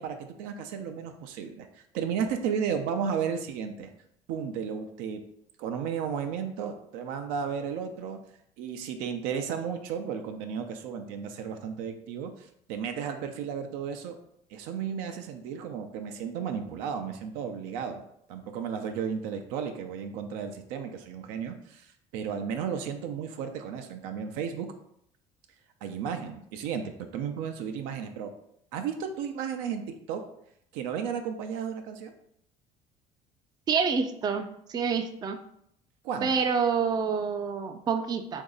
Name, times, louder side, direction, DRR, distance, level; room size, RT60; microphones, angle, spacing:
voice 1, 0.0-1.7 1.9-3.9 4.3-5.2 5.6-8.2 8.6-14.2 14.5-18.0 18.3-21.9 22.1-24.7 25.8-28.3 28.7-30.2 30.7-32.1 36.0-36.3, right 7 dB, 80° right, 6 dB, 0.5 m, -33 dB
voice 2, 33.7-35.4 36.2-38.4, right 6 dB, 30° right, 7 dB, 0.4 m, -27 dB
3.1 x 2.7 x 3.7 m, 0.71 s
supercardioid pair, 105°, 14 cm